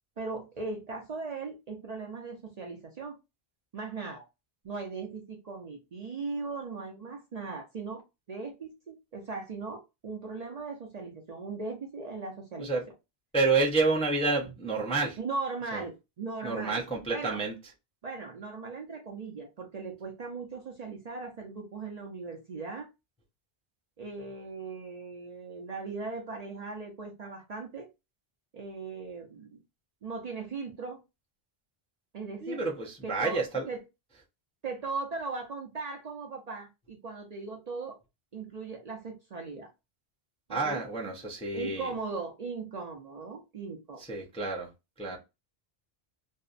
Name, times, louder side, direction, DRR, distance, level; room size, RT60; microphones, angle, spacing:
voice 1, 0.2-3.2 3.7-4.2 4.6-8.0 8.3-12.7 14.4-14.5 15.2-16.8 17.1-17.4 18.0-22.9 24.0-27.9 28.5-29.6 30.0-31.0 32.1-32.7 33.0-33.8 34.6-38.0 38.3-39.7 40.5-40.8 41.5-44.0 45.1-45.2, right 4 dB, 50° right, 0.5 m, -38 dB
voice 2, 13.3-15.2 15.7-15.8 16.4-17.5 32.4-33.7 40.5-41.9 44.0-44.7 45.0-45.2, right 3 dB, 10° left, 0.3 m, -29 dB
2.6 x 2.0 x 2.4 m
omnidirectional pair, 1.0 m